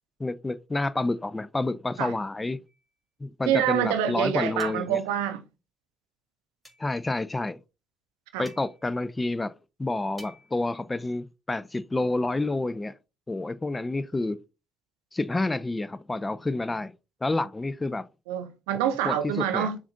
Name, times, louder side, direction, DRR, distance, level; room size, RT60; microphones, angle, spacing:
voice 1, 0.2-2.6 3.2-5.0 6.8-7.6 8.4-9.5 9.8-12.9 13.3-14.4 15.1-16.9 17.2-18.1 19.0-19.7, left 2 dB, 20° left, 0.4 m, -29 dB
sound 1, 2.6-2.9 4.6-5.1 6.6-7.0 8.4-8.9 10.2-10.7, equal, 5° left, 2.2 m, -51 dB
voice 2, 3.5-5.4 8.3-8.5 18.3-19.8, right 9 dB, 85° right, 0.5 m, -26 dB
7.0 x 2.5 x 2.5 m
hypercardioid pair, 50°, 0 cm